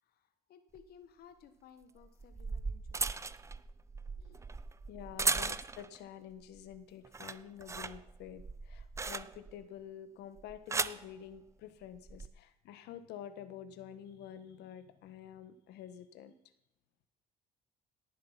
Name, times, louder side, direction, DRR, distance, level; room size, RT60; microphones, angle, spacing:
voice 1, 0.0-3.1 4.1-4.4, left 8 dB, 65° left, 9 dB, 1.5 m, -59 dB
sound 1, 0.8-0.9 2.0-6.0 6.4-6.8 7.0-9.6 10.4-11.1 12.0-12.3, right 4 dB, 15° right, 0.5 m, -37 dB
voice 2, 4.9-16.3, left 9 dB, 85° left, 11 dB, 1.4 m, -48 dB
18.0 x 7.8 x 5.7 m, 0.77 s
cardioid pair, 110°, 17 cm